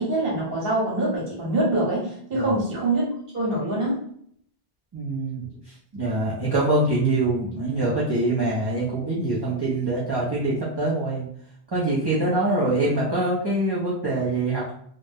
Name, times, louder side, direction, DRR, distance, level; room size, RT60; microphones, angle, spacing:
voice 1, 0.0-3.1 3.3-4.0, right 2 dB, 60° right, -4 dB, 1.3 m, -24 dB
voice 2, 4.9-5.5 5.9-11.3 11.7-14.7, right 2 dB, 30° right, -7 dB, 0.5 m, -24 dB
2.5 x 2.1 x 3.4 m, 0.65 s
omnidirectional pair, 1.1 m